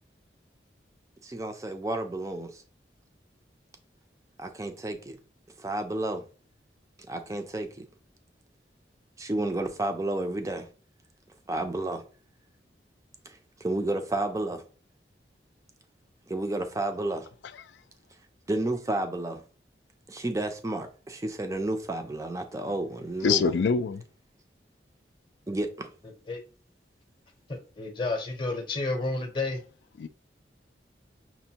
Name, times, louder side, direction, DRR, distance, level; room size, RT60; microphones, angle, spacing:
voice 1, 1.2-2.6 4.4-5.2 5.6-6.2 7.1-7.9 9.2-10.7 11.5-12.0 13.3-14.6 16.3-17.3 18.5-19.4 20.1-23.5 25.5-25.9, right 2 dB, 20° right, 0.4 m, -31 dB
voice 2, 23.2-24.0 30.0-30.1, left 6 dB, 85° left, 0.4 m, -25 dB
voice 3, 27.5-29.6, left 3 dB, 25° left, 0.7 m, -31 dB
6.0 x 2.1 x 2.8 m
head